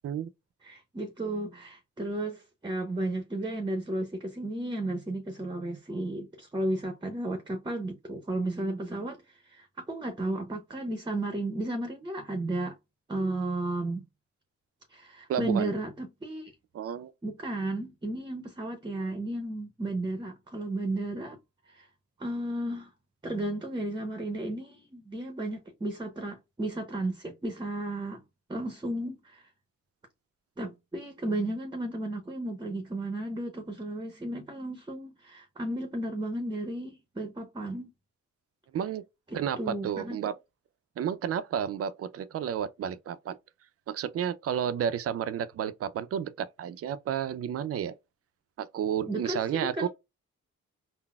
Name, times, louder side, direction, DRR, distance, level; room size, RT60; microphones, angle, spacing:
voice 1, 0.6-12.8 13.1-14.0 14.9-16.5 17.2-21.4 21.7-21.9 22.2-22.9 23.2-28.2 28.5-29.5 30.6-37.9 39.3-40.2 49.1-49.9, right 1 dB, 15° right, 0.7 m, -33 dB
voice 2, 15.3-15.7 16.7-17.1 38.7-39.0 39.3-40.3 41.0-43.4 43.9-48.0 48.6-49.9, right 9 dB, 50° right, 0.4 m, -31 dB
3.9 x 2.0 x 2.3 m
cardioid pair, 85°, 30 cm